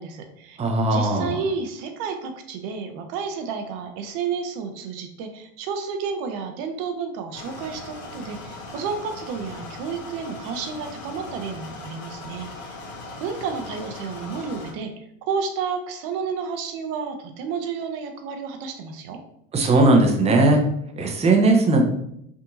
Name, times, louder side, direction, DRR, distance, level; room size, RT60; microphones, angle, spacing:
voice 1, 0.0-0.6 0.9-12.8 13.2-19.2, right 5 dB, 55° right, 6 dB, 0.7 m, -31 dB
voice 2, 0.6-1.4 19.5-20.6 21.0-21.8, right 2 dB, 15° right, 2 dB, 0.6 m, -18 dB
sound 1, 7.3-14.7, left 2 dB, 65° left, 1.0 m, -39 dB
4.7 x 2.7 x 2.6 m, 0.76 s
hypercardioid pair, 75°, 41 cm